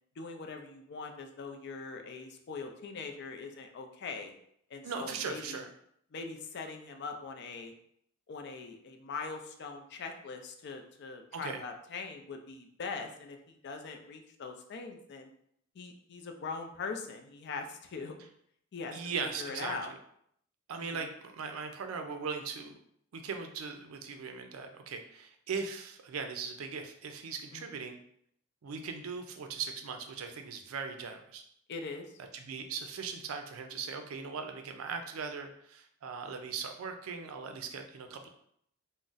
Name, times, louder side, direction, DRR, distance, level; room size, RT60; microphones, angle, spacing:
voice 1, 0.2-4.3 4.7-5.6 6.1-7.7 8.3-15.3 15.8-18.2 18.7-19.0 19.4-19.9 20.7-21.0 27.5-27.7 31.7-32.1, left 4 dB, 55° left, 4 dB, 0.4 m, -42 dB
voice 2, 4.8-5.6 11.3-11.6 18.9-19.9 20.7-22.7 23.1-28.0 28.6-31.4 32.3-38.3, right 5 dB, 80° right, 6 dB, 0.4 m, -39 dB
2.4 x 2.1 x 3.9 m, 0.69 s
head